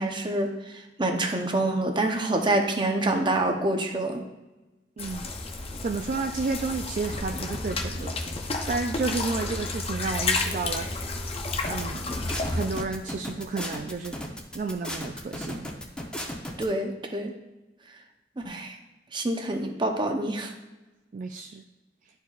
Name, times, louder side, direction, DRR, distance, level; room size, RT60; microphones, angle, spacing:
voice 1, 0.0-4.2 16.6-17.3 18.4-18.8 19.1-20.5, right 2 dB, 25° right, 3 dB, 0.8 m, -27 dB
sound 1, 5.0-12.8, left 3 dB, 35° left, 0.6 m, -31 dB
voice 2, 5.0-5.3 5.8-10.9 11.6-12.0 12.5-14.2 14.5-15.7 21.1-21.6, right 4 dB, 45° right, 4 dB, 0.3 m, -31 dB
sound 2, 11.6-16.6, left 1 dB, 5° left, 0.8 m, -35 dB
12.0 x 4.5 x 2.4 m, 1.1 s
head